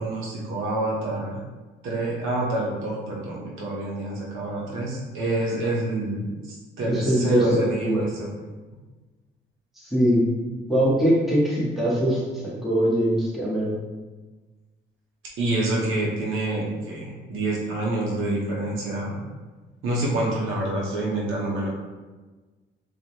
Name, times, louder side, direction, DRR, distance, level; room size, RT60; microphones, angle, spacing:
voice 1, 0.0-1.4 1.8-8.3 15.4-19.2 19.8-21.7, right 2 dB, 85° right, -4 dB, 0.7 m, -27 dB
voice 2, 6.8-7.4 7.8-8.0 9.8-10.3 10.7-13.8, equal, ahead, -7 dB, 0.8 m, -22 dB
2.1 x 2.1 x 2.8 m, 1.3 s
cardioid pair, 90°, 20 cm